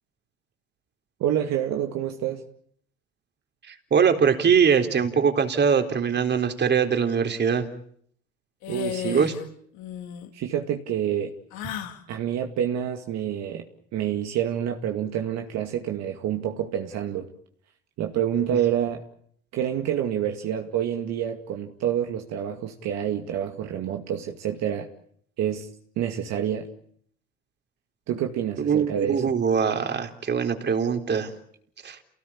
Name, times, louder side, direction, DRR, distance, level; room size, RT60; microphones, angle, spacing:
voice 1, 1.2-2.4 8.7-9.3 10.3-11.3 12.1-13.7 13.9-17.3 18.0-19.1 19.5-24.9 25.4-25.7 26.0-26.7 28.1-29.2, right 10 dB, 60° right, 4 dB, 2.3 m, -27 dB
voice 2, 3.7-7.7 9.1-9.3 28.6-31.3 31.8-32.0, right 6 dB, 35° right, 6 dB, 3.9 m, -22 dB
sound 1, 8.6-9.4 9.7-10.3 11.5-12.0, left 10 dB, 75° left, 3.3 m, -34 dB
28.5 x 18.5 x 8.7 m, 0.66 s
supercardioid pair, 90°, 29 cm